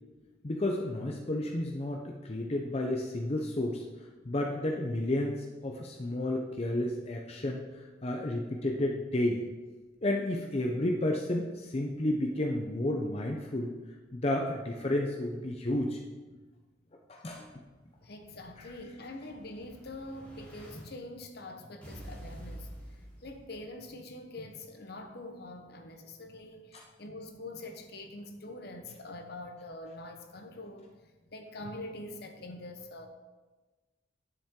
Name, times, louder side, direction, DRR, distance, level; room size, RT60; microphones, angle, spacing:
voice 1, 0.4-3.8 4.2-9.4 10.0-13.7 14.1-16.0 17.1-17.4 18.6-18.7 26.7-26.8, left 1 dB, 35° left, 1 dB, 0.6 m, -31 dB
Explosion, 17.7-20.8 21.8-23.8, equal, 5° left, 2.8 m, -49 dB
voice 2, 18.0-30.9 31.3-33.1, left 2 dB, 55° left, 5 dB, 1.0 m, -44 dB
10.0 x 7.3 x 3.7 m, 1.3 s
head